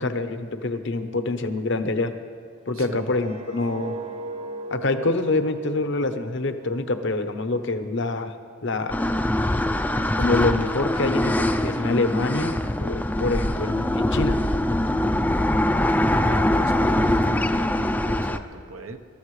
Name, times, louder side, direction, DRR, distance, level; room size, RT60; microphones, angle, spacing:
voice 1, 0.0-2.1 2.7-4.0 4.7-8.3 8.6-8.9 10.1-14.4, left 2 dB, 60° left, 8 dB, 0.9 m, -26 dB
sound 1, 2.7-7.8 8.1-8.5, right 3 dB, 30° right, 0.7 m, -38 dB
voice 2, 2.7-3.1 16.2-19.0, right 2 dB, 85° right, 7 dB, 1.0 m, -37 dB
sound 2, 8.9-18.4, left 1 dB, 10° left, 0.4 m, -23 dB
26.5 x 13.5 x 3.2 m, 2.2 s
head